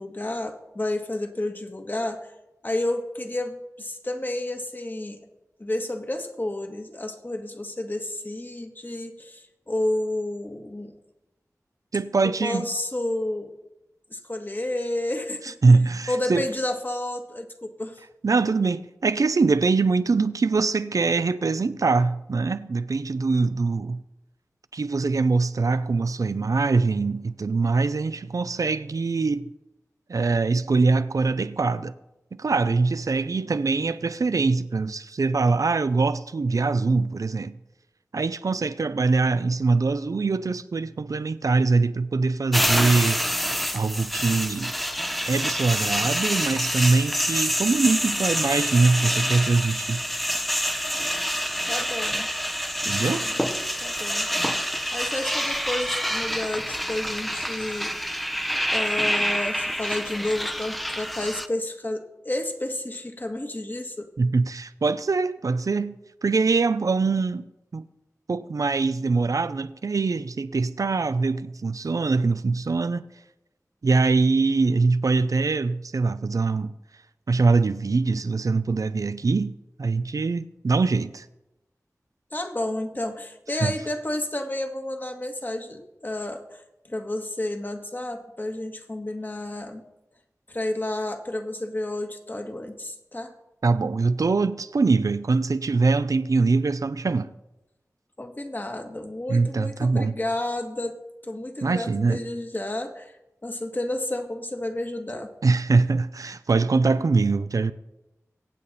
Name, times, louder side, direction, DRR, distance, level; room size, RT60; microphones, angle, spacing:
voice 1, 0.0-2.3 2.6-5.2 5.6-10.9 12.2-13.5 14.1-15.5 16.1-18.0 51.7-52.3 53.2-53.4 53.8-54.3 54.6-58.2 58.7-64.1 82.3-86.6 86.9-89.8 90.5-93.3 98.2-101.0 101.2-103.1 103.4-105.3, left 1 dB, 35° left, 1.8 m, -31 dB
voice 2, 11.9-12.7 15.4-16.4 18.2-24.0 24.7-29.5 30.1-31.9 32.4-37.6 38.1-43.2 43.7-44.7 45.3-50.0 52.8-53.3 64.2-67.5 67.7-67.8 68.3-73.0 73.8-76.7 77.3-81.3 83.6-83.7 93.6-97.3 99.3-100.1 101.6-102.2 105.4-107.7, right 4 dB, 75° right, 0.6 m, -23 dB
sound 1, 42.5-61.5, equal, ahead, 0.8 m, -27 dB
22.5 x 8.6 x 4.2 m
wide cardioid pair, 55°, 6 cm